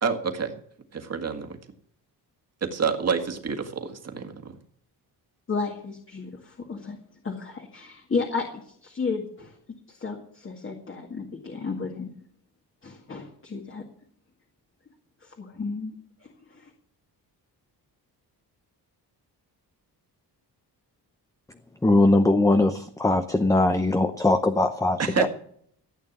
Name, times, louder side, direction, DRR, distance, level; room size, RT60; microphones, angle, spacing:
voice 1, 0.0-0.5 0.9-1.6 2.6-4.6 25.0-25.3, right 5 dB, 40° right, 6 dB, 1.9 m, -28 dB
voice 2, 5.5-7.0 7.2-8.5 8.8-9.5 9.9-12.1 12.8-13.8 15.2-15.9 16.5-16.7, left 4 dB, 30° left, 1 dB, 1.9 m, -32 dB
voice 3, 21.8-25.3, left 2 dB, 10° left, 8 dB, 0.7 m, -21 dB
15.0 x 8.9 x 7.3 m, 0.64 s
wide cardioid pair, 160°, 41 cm